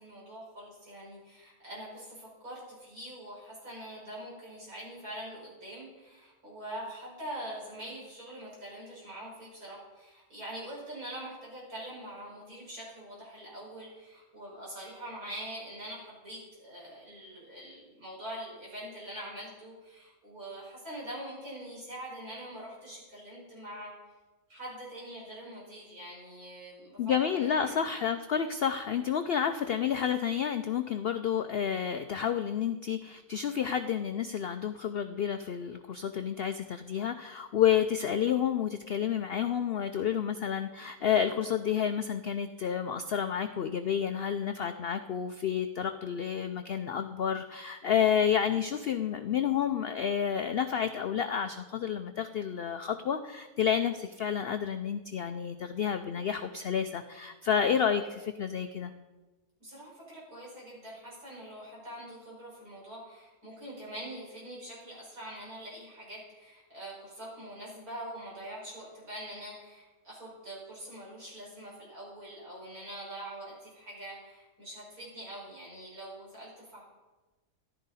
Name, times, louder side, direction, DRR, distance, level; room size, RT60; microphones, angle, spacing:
voice 1, 0.0-23.9 24.5-27.8 59.6-76.8, right 1 dB, 70° right, -6 dB, 5.8 m, -44 dB
voice 2, 27.0-58.9, left 8 dB, 70° left, 8 dB, 0.5 m, -30 dB
14.0 x 12.0 x 4.1 m, 1.2 s
omnidirectional pair, 1.6 m